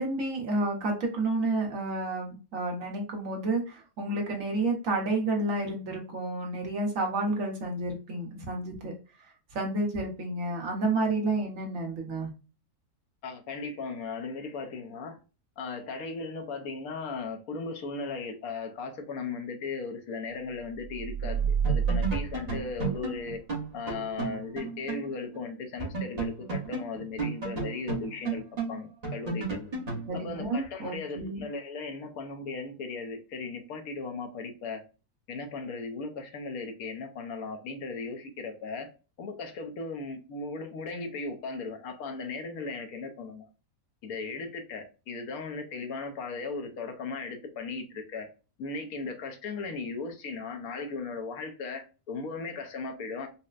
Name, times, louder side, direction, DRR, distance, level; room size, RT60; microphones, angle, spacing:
voice 1, 0.0-8.9 9.5-12.3 30.1-31.4, right 2 dB, 60° right, 1.3 m, -30 dB
voice 2, 13.2-15.2 15.6-23.4 23.7-29.7 30.1-34.8 35.3-43.5 44.0-48.3 48.6-53.3, left 4 dB, 70° left, 1.1 m, -37 dB
sound 1, 20.7-23.4, right 7 dB, 85° right, 0.5 m, -29 dB
sound 2, 21.2-21.4 21.6-25.1 25.3-25.4 25.8-30.1, right 4 dB, 30° right, 0.9 m, -33 dB
4.1 x 2.1 x 2.3 m
omnidirectional pair, 1.6 m